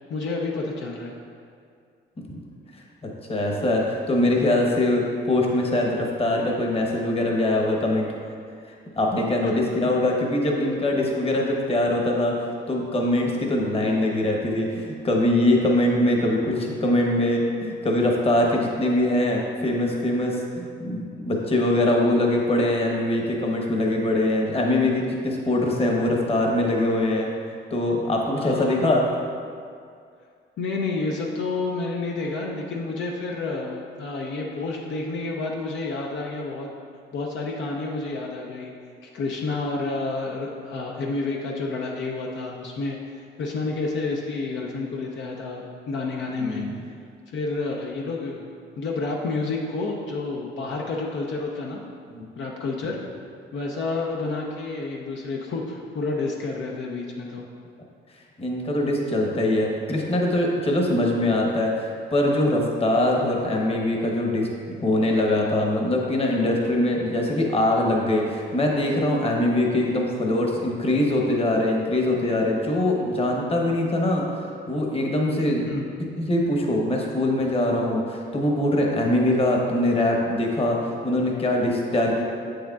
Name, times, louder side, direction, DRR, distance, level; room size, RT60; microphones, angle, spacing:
voice 1, 0.1-1.1 28.4-28.8 30.6-36.7 37.1-38.7 39.1-43.0 43.4-46.6 47.3-48.5 48.8-51.8 52.4-53.0 53.5-57.4 75.6-75.8, left 3 dB, 70° left, -1 dB, 0.7 m, -29 dB
voice 2, 3.3-8.1 9.0-12.3 12.7-27.3 27.7-29.0 46.4-46.7 52.1-52.3 58.4-74.2 74.7-75.7 76.2-82.2, left 1 dB, 30° left, -1 dB, 1.1 m, -23 dB
7.4 x 6.4 x 2.4 m, 2.2 s
cardioid pair, 90°, 20 cm